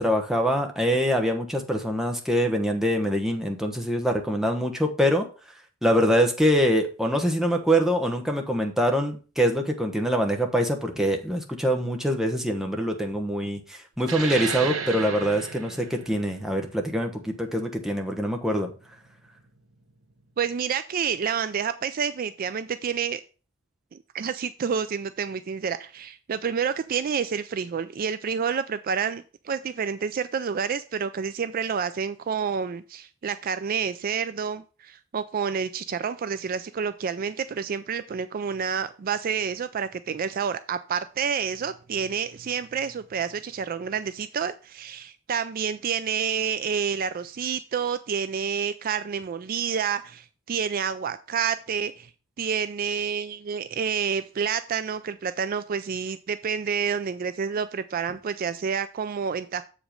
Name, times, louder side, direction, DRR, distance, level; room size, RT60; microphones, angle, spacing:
voice 1, 0.0-5.3 5.8-18.7, equal, ahead, 2 dB, 1.1 m, -24 dB
sound 1, 14.0-19.1, right 5 dB, 70° right, 1.2 m, -35 dB
voice 2, 20.4-23.2 23.9-52.1 52.4-59.6, right 6 dB, 45° right, 12 dB, 0.4 m, -29 dB
7.4 x 5.0 x 5.1 m, 0.36 s
head